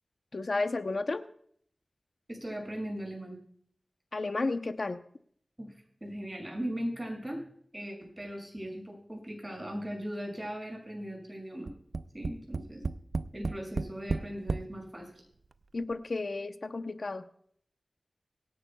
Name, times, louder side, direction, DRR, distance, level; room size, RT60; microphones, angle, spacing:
voice 1, 0.3-1.2 4.1-5.0 15.7-17.2, left 3 dB, 60° left, 8 dB, 0.7 m, -32 dB
voice 2, 2.3-3.4 5.6-5.7 6.0-7.4 7.7-11.7 12.1-12.8 13.3-15.1, equal, 20° right, 0 dB, 6.3 m, -38 dB
Tap, 11.7-14.7 15.5-15.6 15.9-16.0, right 4 dB, 75° right, 0.5 m, -33 dB
25.0 x 11.0 x 2.3 m, 0.63 s
wide cardioid pair, 65°, 0 cm